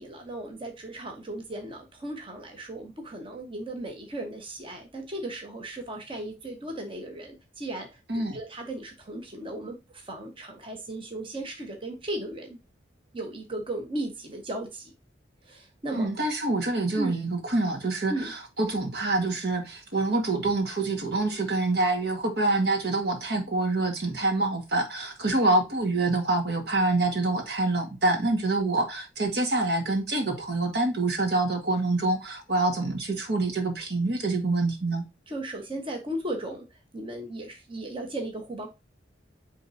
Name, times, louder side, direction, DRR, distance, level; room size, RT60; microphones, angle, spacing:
voice 1, 0.0-12.6 13.1-14.9 15.4-16.1 16.9-17.1 18.1-18.3 35.3-36.6 36.9-38.7, right 1 dB, 30° right, 1.4 m, -36 dB
voice 2, 15.9-35.1, right 2 dB, 60° right, 1.8 m, -26 dB
9.0 x 3.8 x 2.8 m
head